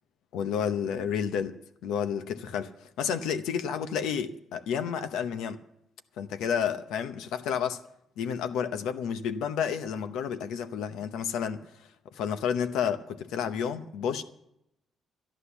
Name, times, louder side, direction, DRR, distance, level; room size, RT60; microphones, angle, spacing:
voice 1, 0.3-2.7 3.0-5.6 6.2-7.8 8.2-11.7 12.1-14.2, left 7 dB, 90° left, 0.8 m, -30 dB
13.5 x 10.0 x 7.0 m
cardioid pair, 90°, 0 cm